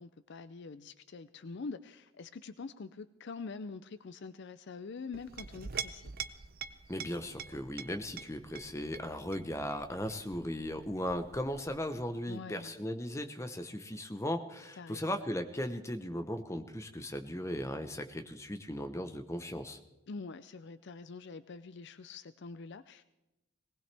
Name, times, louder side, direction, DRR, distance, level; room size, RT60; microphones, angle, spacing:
voice 1, 0.0-6.1 12.3-12.7 14.8-15.2 20.1-23.0, left 4 dB, 50° left, 13 dB, 0.4 m, -45 dB
Chink clink, 5.1-12.2, right 7 dB, 45° right, 0.6 m, -45 dB
voice 2, 6.9-19.8, left 1 dB, 15° left, 7 dB, 0.9 m, -37 dB
19.5 x 18.5 x 3.4 m, 0.96 s
head